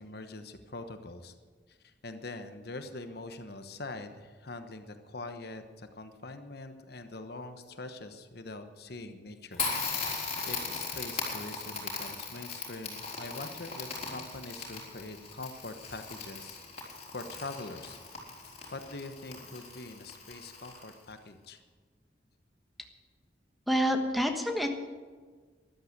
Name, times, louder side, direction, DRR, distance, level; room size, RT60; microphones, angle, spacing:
voice 1, 0.0-1.3 1.7-9.6 10.0-10.1 10.5-16.6 17.1-18.0 18.7-21.6, left 2 dB, 60° left, 8 dB, 1.1 m, -43 dB
Crackle, 9.5-21.1, left 4 dB, 35° left, 4.0 m, -38 dB
voice 2, 23.7-24.7, equal, ahead, 4 dB, 1.3 m, -27 dB
13.5 x 11.5 x 7.9 m, 1.5 s
head